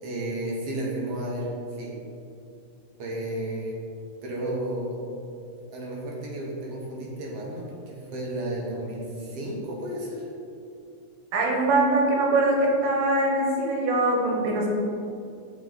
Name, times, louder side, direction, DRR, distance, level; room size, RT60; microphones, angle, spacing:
voice 1, 0.0-2.0 3.0-3.8 4.2-5.0 5.7-10.3, right 1 dB, 65° right, -3 dB, 1.7 m, -32 dB
voice 2, 11.3-14.7, right 2 dB, 90° right, -1 dB, 2.6 m, -22 dB
7.2 x 4.8 x 3.8 m, 2.5 s
omnidirectional pair, 3.8 m